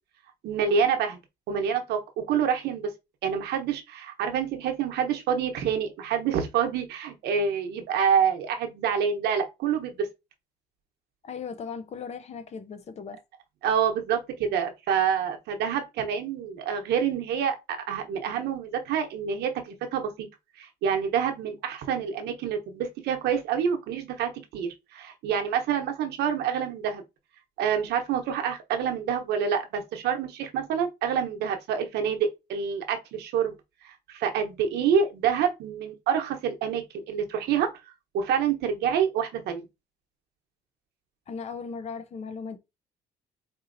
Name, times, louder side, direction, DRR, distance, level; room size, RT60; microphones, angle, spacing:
voice 1, 0.4-1.2 1.5-2.9 3.2-10.1 13.6-20.3 20.6-27.0 27.6-33.5 33.8-37.7 38.1-39.7, right 7 dB, 75° right, 0.9 m, -27 dB
voice 2, 11.2-13.2 41.3-42.6, left 5 dB, 40° left, 0.6 m, -37 dB
4.5 x 2.7 x 2.6 m
cardioid pair, 110°, 17 cm